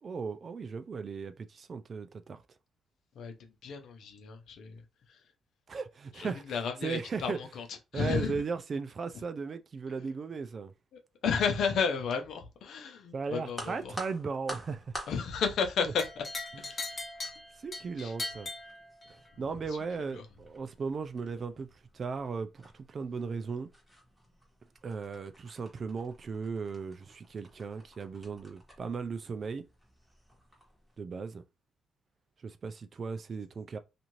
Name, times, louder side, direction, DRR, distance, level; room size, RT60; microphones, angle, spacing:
voice 1, 0.0-2.4 5.7-6.5 6.8-7.4 7.9-10.7 13.1-14.9 17.6-18.5 19.1-21.7 21.9-23.7 24.8-29.6 31.0-31.4 32.4-33.8, right 5 dB, 45° right, 0.4 m, -37 dB
voice 2, 3.1-4.8 5.1-5.2 6.1-7.7 7.9-8.4 10.9-13.9 15.1-16.2 16.6-17.0 18.0-18.1 19.7-19.8 20.1-20.2, left 6 dB, 70° left, 0.6 m, -33 dB
sound 1, 13.5-31.0, equal, 5° right, 1.3 m, -51 dB
sound 2, 16.0-19.4, left 2 dB, 40° left, 0.8 m, -40 dB
2.6 x 2.5 x 3.0 m
cardioid pair, 90°, 0 cm